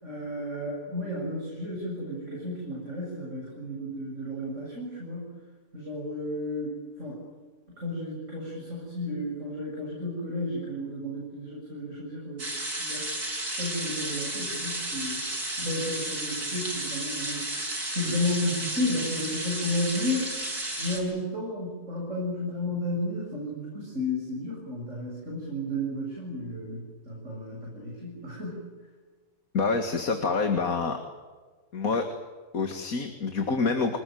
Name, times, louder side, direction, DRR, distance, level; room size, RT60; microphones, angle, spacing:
voice 1, 0.0-5.4 5.7-7.2 7.7-12.5 12.8-13.1 13.5-15.3 15.6-20.5 20.8-28.7, left 1 dB, 50° right, -3 dB, 8.1 m, -33 dB
sound 1, 12.4-21.0, right 1 dB, 85° right, 7.2 m, -33 dB
voice 2, 29.5-31.0 31.7-32.1 32.5-34.0, left 4 dB, 65° left, 6 dB, 2.4 m, -27 dB
27.5 x 20.0 x 9.3 m, 1.4 s
omnidirectional pair, 1.6 m